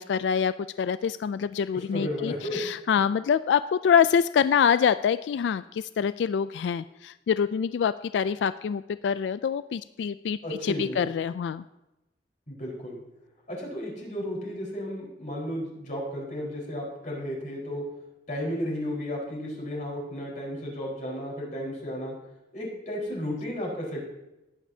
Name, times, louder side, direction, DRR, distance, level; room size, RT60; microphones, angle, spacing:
voice 1, 0.0-11.6, left 7 dB, 80° left, 14 dB, 0.3 m, -25 dB
voice 2, 1.7-2.6 10.4-11.1 12.5-13.0 13.5-17.8 18.3-22.1 22.5-24.0, equal, 45° left, -2 dB, 4.4 m, -33 dB
17.5 x 9.3 x 2.8 m, 0.95 s
head